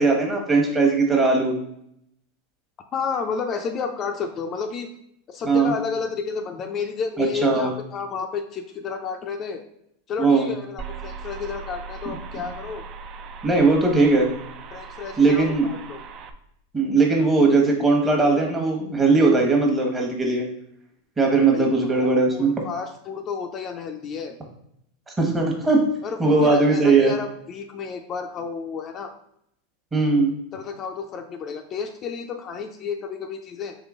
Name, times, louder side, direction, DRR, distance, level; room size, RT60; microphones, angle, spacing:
voice 1, 0.0-1.5 5.4-5.7 7.2-7.7 10.2-10.5 13.4-14.3 15.2-15.7 16.7-20.5 21.2-22.6 25.2-25.8 26.2-27.1 29.9-30.4, right 3 dB, 15° right, 1 dB, 1.2 m, -19 dB
voice 2, 2.9-4.9 5.3-9.6 10.1-12.8 14.7-16.0 21.5-24.4 26.0-29.1 30.5-33.8, left 5 dB, 35° left, 5 dB, 0.4 m, -31 dB
sound 1, 10.8-16.3, right 5 dB, 40° right, 0.4 m, -39 dB
3.7 x 3.2 x 3.6 m, 0.74 s
hypercardioid pair, 110°, 0 cm